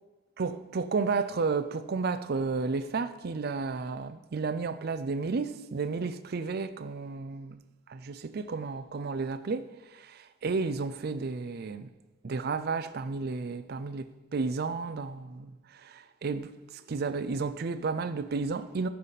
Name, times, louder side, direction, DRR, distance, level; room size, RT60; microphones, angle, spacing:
voice 1, 0.4-7.6 7.9-9.7 9.9-11.9 12.2-18.9, right 4 dB, 50° right, 0.4 m, -32 dB
14.0 x 5.6 x 4.1 m
head